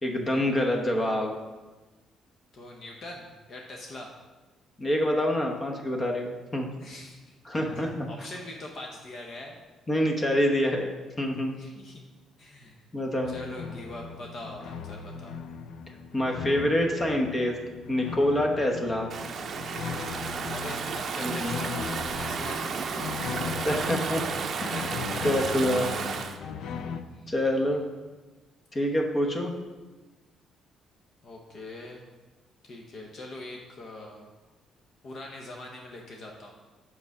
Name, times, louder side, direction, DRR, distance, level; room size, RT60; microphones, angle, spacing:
voice 1, 0.0-1.3 4.8-6.7 7.5-8.1 9.9-10.9 11.2-11.6 12.9-13.3 16.1-17.6 17.9-19.1 21.2-21.6 23.6-24.2 24.6-25.9 27.3-27.8 28.7-29.5, left 1 dB, 25° left, 2 dB, 0.9 m, -26 dB
voice 2, 2.5-4.1 6.8-7.3 7.7-9.6 11.5-12.0 12.4-12.8 13.3-15.4 20.5-23.1 25.4-26.2 27.0-27.6 31.2-32.0 32.6-34.3 35.0-36.5, left 2 dB, 50° left, 0 dB, 0.9 m, -43 dB
sound 1, 13.2-27.0, left 6 dB, 80° left, 0.4 m, -38 dB
Stream / Ocean, 19.1-26.4, right 5 dB, 50° right, 0.5 m, -33 dB
6.0 x 4.7 x 5.4 m, 1.2 s
cardioid pair, 120°, 0 cm